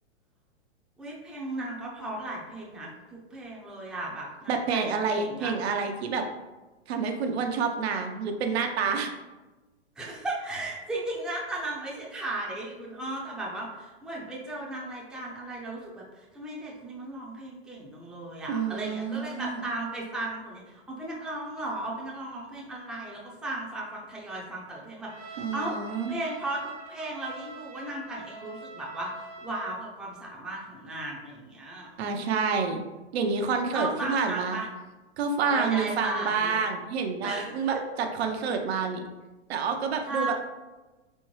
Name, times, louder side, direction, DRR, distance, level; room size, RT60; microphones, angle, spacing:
voice 1, 1.0-2.9 3.3-5.5 10.0-25.8 26.1-32.6 33.7-34.7 35.5-36.6 37.2-37.5 37.7-37.8 40.0-40.3, right 2 dB, ahead, -4 dB, 0.6 m, -36 dB
voice 2, 4.5-6.3 6.9-9.1 18.5-19.6 25.4-26.2 32.0-32.8 33.1-34.6 35.2-39.0 39.5-40.3, right 5 dB, 65° right, 4 dB, 0.7 m, -28 dB
Trumpet, 25.1-29.8, right 2 dB, 85° right, 1.0 m, -44 dB
4.4 x 3.4 x 3.1 m, 1.2 s
hypercardioid pair, 130°, 34 cm